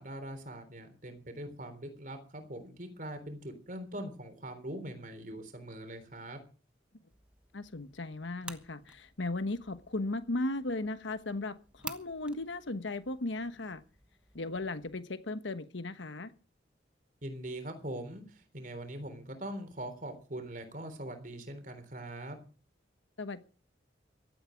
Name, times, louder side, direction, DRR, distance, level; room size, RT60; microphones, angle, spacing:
voice 1, 0.0-6.4 17.2-22.4, right 1 dB, 45° right, 3.6 m, -42 dB
sound 1, 7.1-15.0, right 2 dB, 5° right, 1.1 m, -52 dB
voice 2, 7.5-13.8 14.3-16.3 23.2-23.4, left 2 dB, 90° left, 1.2 m, -36 dB
15.5 x 13.0 x 5.2 m
head